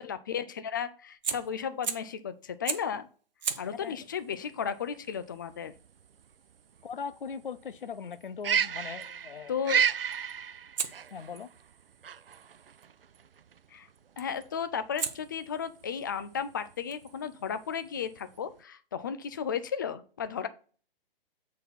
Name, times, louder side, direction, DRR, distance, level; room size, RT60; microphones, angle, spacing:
voice 1, 0.0-3.1 3.6-5.7 9.5-9.8 13.7-13.9 14.2-20.5, left 7 dB, 20° left, 0.4 m, -34 dB
Fire, 1.1-2.2 2.7-3.0 3.4-8.3 10.8-12.9 14.2-14.5 15.0-18.4, right 7 dB, 50° right, 0.9 m, -41 dB
voice 2, 3.6-4.0 6.8-9.5 11.1-11.5, left 6 dB, 60° left, 0.6 m, -40 dB
sound 1, 4.1-18.6, right 7 dB, 75° right, 0.4 m, -34 dB
7.9 x 4.2 x 4.2 m
figure-of-eight pair, 125°, 29 cm